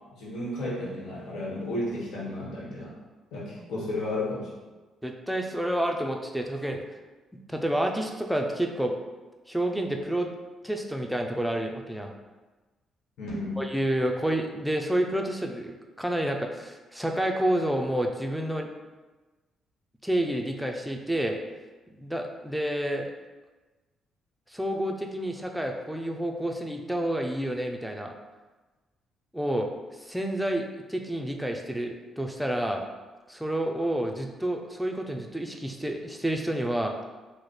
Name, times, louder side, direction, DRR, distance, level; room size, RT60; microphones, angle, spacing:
voice 1, 0.1-2.9 3.3-4.5 13.2-13.6, left 1 dB, 85° left, -6 dB, 1.2 m, -33 dB
voice 2, 5.0-6.8 7.5-8.9 9.5-10.3 10.6-12.1 13.6-18.7 20.0-21.4 22.0-23.1 24.5-28.1 29.3-29.7 30.0-30.6 30.9-32.8 33.3-36.9, right 1 dB, ahead, 2 dB, 0.4 m, -29 dB
3.2 x 2.1 x 4.0 m, 1.2 s
cardioid pair, 90°, 0 cm